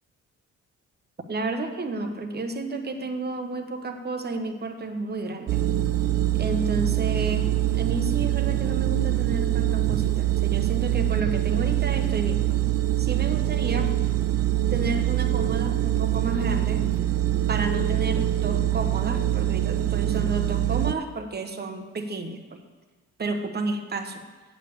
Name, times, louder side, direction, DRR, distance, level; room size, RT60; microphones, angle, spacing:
voice 1, 1.3-5.6 6.4-12.4 13.0-14.0 14.7-16.9 17.5-22.6 23.2-24.2, right 2 dB, 35° right, 7 dB, 1.2 m, -31 dB
sound 1, 5.5-20.9, right 13 dB, 50° right, 0.6 m, -24 dB
8.4 x 7.5 x 6.9 m, 1.4 s
cardioid pair, 90°, 30 cm